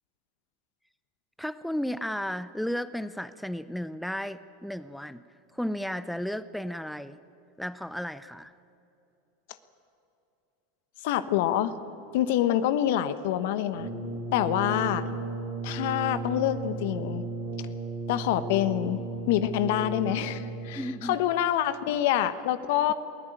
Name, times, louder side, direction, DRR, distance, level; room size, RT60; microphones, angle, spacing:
voice 1, 1.4-5.2 5.5-7.2 7.6-8.5 20.7-21.2, equal, ahead, 14 dB, 0.7 m, -34 dB
voice 2, 11.0-11.7 12.1-13.9 14.3-15.1 15.6-17.2 18.1-19.0 19.3-22.9, left 12 dB, 65° left, 13 dB, 1.2 m, -26 dB
Brass instrument, 13.7-20.8, right 3 dB, 65° right, 4.8 m, -35 dB
22.5 x 16.5 x 9.1 m, 2.8 s
hypercardioid pair, 100°, 0 cm